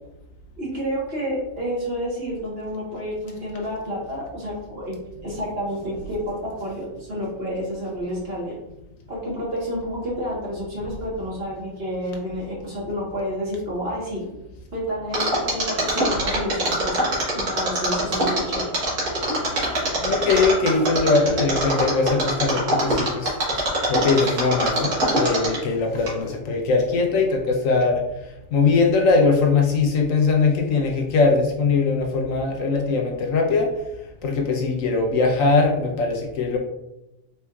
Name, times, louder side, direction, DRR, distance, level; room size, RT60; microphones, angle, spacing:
voice 1, 0.6-5.0 5.2-8.6 9.1-14.2 14.7-17.0 17.3-18.7, equal, 45° right, -5 dB, 1.5 m, -29 dB
Mechanisms, 15.1-25.7 26.1-26.2, right 1 dB, 80° right, 1.8 m, -23 dB
voice 2, 20.0-28.0 28.5-33.7 34.2-36.6, left 4 dB, 70° left, 1 dB, 1.1 m, -21 dB
4.3 x 4.3 x 2.3 m, 0.93 s
omnidirectional pair, 1.5 m